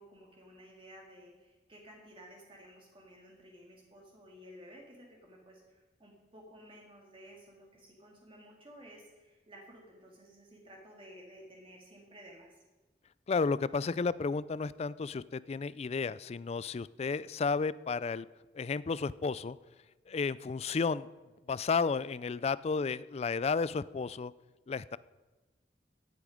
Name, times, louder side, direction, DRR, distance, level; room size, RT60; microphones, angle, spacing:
voice 1, 0.0-12.6, equal, 30° right, -1 dB, 2.3 m, -54 dB
voice 2, 13.3-18.3 18.5-19.6 20.1-21.1 21.5-24.3 24.7-25.0, left 4 dB, 35° left, 18 dB, 0.3 m, -32 dB
17.5 x 8.3 x 5.1 m, 1.2 s
head